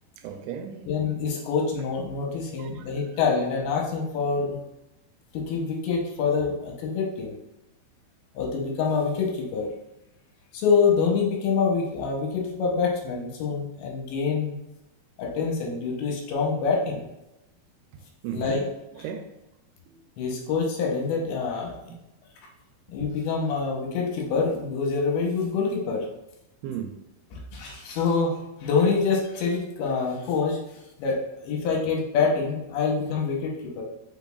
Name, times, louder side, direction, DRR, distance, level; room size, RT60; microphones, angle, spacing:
voice 1, 0.2-0.9 2.6-2.9 17.9-18.7 19.0-19.3 19.9-20.0 21.9-22.0 26.6-27.0, right 8 dB, 85° right, 2.5 m, -36 dB
voice 2, 0.9-4.6 5.3-7.4 8.4-9.7 10.5-14.6 15.2-17.1 18.3-18.6 20.2-21.8 22.9-26.1 27.3-30.6 31.0-33.8, left 5 dB, 80° left, 2.7 m, -26 dB
5.6 x 4.0 x 2.3 m
omnidirectional pair, 4.5 m